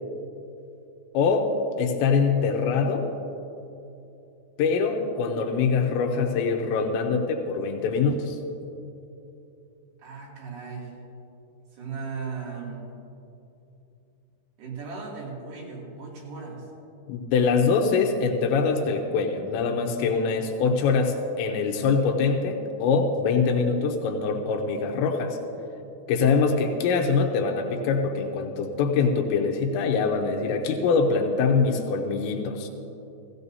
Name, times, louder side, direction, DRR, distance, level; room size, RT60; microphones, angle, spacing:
voice 1, 1.1-1.5 1.8-3.1 4.6-8.4 17.1-25.4 26.1-32.7, left 5 dB, 90° left, 2 dB, 3.1 m, -24 dB
voice 2, 10.0-10.9 11.7-12.9 14.6-16.7, right 5 dB, 70° right, -5 dB, 4.7 m, -37 dB
16.5 x 16.5 x 2.7 m, 2.8 s
omnidirectional pair, 5.0 m